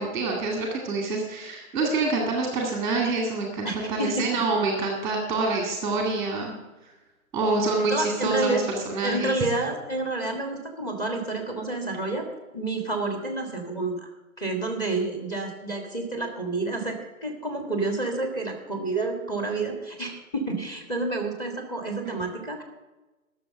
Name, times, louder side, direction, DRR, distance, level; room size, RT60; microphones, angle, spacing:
voice 1, 0.0-6.6 7.3-9.3, right 3 dB, 10° right, 1 dB, 1.8 m, -26 dB
voice 2, 3.6-4.4 7.9-8.6 9.0-12.3 12.5-14.1 14.4-22.6, right 2 dB, 10° left, 3 dB, 1.7 m, -29 dB
12.5 x 6.9 x 7.7 m, 1.1 s
hypercardioid pair, 150°, 42 cm